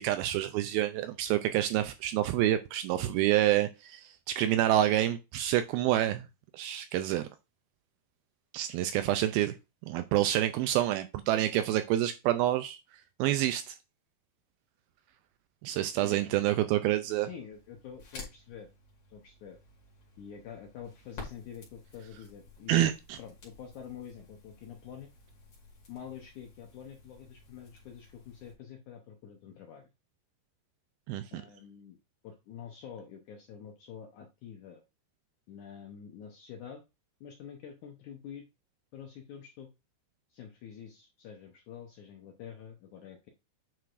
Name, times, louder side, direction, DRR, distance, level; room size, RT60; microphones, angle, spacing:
voice 1, 0.0-6.3 6.5-7.3 8.5-9.6 9.9-12.8 13.2-13.8 15.6-17.3 22.7-23.2 31.1-31.4, right 13 dB, 80° right, 2.2 m, -28 dB
voice 2, 16.0-16.4 17.1-18.7 19.1-19.6 20.2-22.9 23.2-25.1 25.9-29.9 31.3-32.0 32.2-34.8 35.5-36.8 37.2-38.4 38.9-39.7 40.3-43.3, left 8 dB, 75° left, 1.8 m, -47 dB
Crackle, 17.5-28.5, left 4 dB, 40° left, 3.1 m, -52 dB
9.2 x 4.8 x 2.5 m
omnidirectional pair, 4.7 m